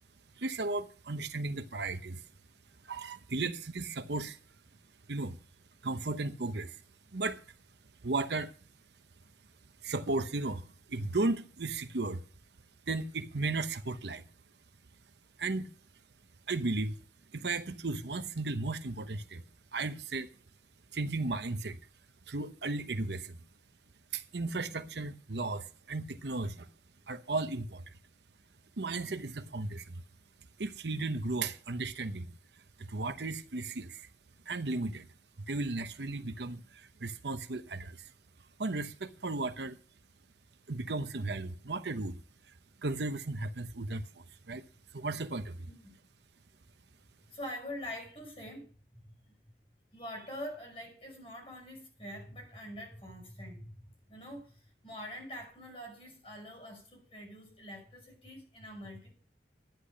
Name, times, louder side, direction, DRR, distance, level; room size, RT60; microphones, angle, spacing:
voice 1, 0.4-2.2 2.8-4.4 5.1-5.4 5.8-6.8 7.1-7.4 8.0-8.5 9.8-12.2 12.9-14.3 15.4-15.7 16.5-17.0 17.3-19.4 19.7-20.3 20.9-21.8 22.3-23.4 24.1-26.7 27.1-27.9 28.8-30.0 30.6-32.3 32.8-34.1 34.5-35.1 35.5-38.1 38.6-39.8 40.7-42.2 42.8-44.6 44.9-45.7, right 3 dB, 75° right, 0.9 m, -35 dB
voice 2, 47.3-49.1 49.9-59.1, equal, 30° left, 5.6 m, -45 dB
11.0 x 10.0 x 5.1 m
head